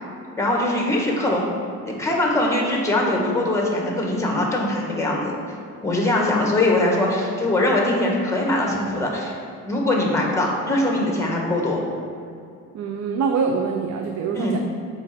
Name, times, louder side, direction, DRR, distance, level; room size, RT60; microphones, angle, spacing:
voice 1, 0.4-1.5 1.8-5.4 5.8-9.3 9.7-11.8 14.3-14.6, left 1 dB, 10° left, -1 dB, 1.7 m, -22 dB
voice 2, 12.7-14.6, right 5 dB, 60° right, 3 dB, 0.6 m, -24 dB
7.2 x 5.1 x 4.5 m, 2.4 s
cardioid pair, 90°, 30 cm